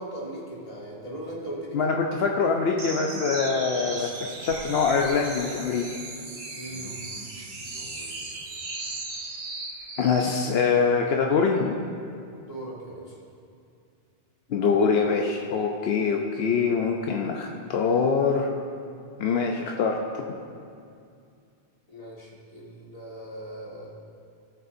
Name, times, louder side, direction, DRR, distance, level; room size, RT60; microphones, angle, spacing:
voice 1, 0.0-1.9 6.5-6.9 12.5-13.1 21.9-23.9, right 1 dB, 35° left, -5 dB, 1.9 m, -38 dB
voice 2, 1.7-4.1 4.4-5.9 10.0-11.8 14.5-18.5 19.2-20.0, left 5 dB, 80° left, 1 dB, 0.9 m, -24 dB
sound 1, 2.8-10.3, right 3 dB, 80° right, 1.2 m, -37 dB
17.5 x 6.7 x 2.6 m, 2.4 s
omnidirectional pair, 1.0 m